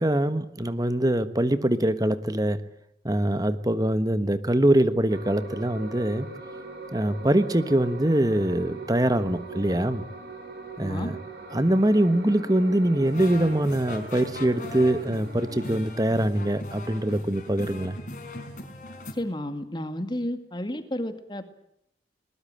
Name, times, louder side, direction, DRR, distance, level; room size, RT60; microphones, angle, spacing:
voice 1, 0.0-2.6 3.0-6.3 6.9-10.0 10.8-11.1 11.5-18.0, right 1 dB, 20° right, 12 dB, 1.3 m, -23 dB
sound 1, 5.1-15.8, right 2 dB, 60° right, 5.3 m, -41 dB
voice 2, 10.8-11.1 19.1-21.4, left 1 dB, 25° left, 9 dB, 2.2 m, -31 dB
sound 2, 13.0-19.1, left 1 dB, 45° left, 4.3 m, -40 dB
21.0 x 20.5 x 9.1 m, 0.76 s
head